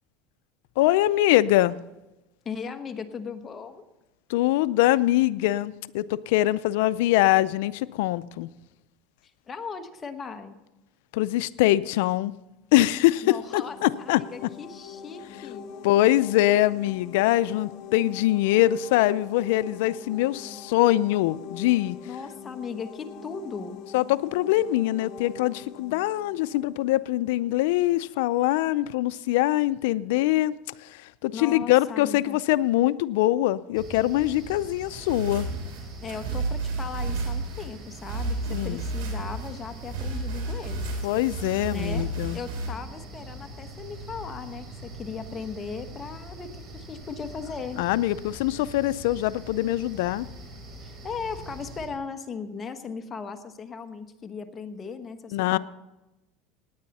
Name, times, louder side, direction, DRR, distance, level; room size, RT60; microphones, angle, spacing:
voice 1, 0.8-1.8 4.3-8.5 11.1-12.3 12.7-14.2 15.8-22.0 23.9-30.5 30.8-35.5 38.5-38.8 41.0-42.4 47.8-50.3 55.3-55.6, left 15 dB, 80° left, 17 dB, 0.4 m, -23 dB
voice 2, 2.4-3.8 9.5-10.5 13.2-15.7 22.0-23.9 31.3-32.4 36.0-40.9 41.7-42.1 42.3-47.8 50.8-55.6, left 5 dB, 25° left, 7 dB, 1.1 m, -37 dB
sound 1, 13.0-27.7, left 6 dB, 55° left, 1.1 m, -44 dB
sound 2, 33.7-51.9, right 2 dB, 35° right, 3.7 m, -43 dB
sound 3, 34.9-42.7, right 2 dB, 90° right, 3.8 m, -32 dB
17.5 x 9.9 x 4.2 m, 1.0 s
supercardioid pair, 130°, 0 cm